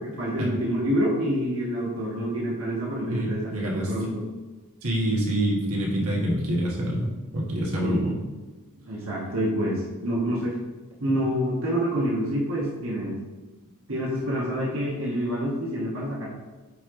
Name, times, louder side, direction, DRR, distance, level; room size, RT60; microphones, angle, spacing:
voice 1, 0.2-4.2 7.8-8.1 8.8-10.6 11.0-13.2 13.9-16.3, equal, 65° right, -5 dB, 1.3 m, -27 dB
voice 2, 3.1-3.9 4.8-8.1, right 1 dB, 80° right, -3 dB, 1.5 m, -26 dB
8.5 x 3.3 x 3.8 m, 1.3 s
head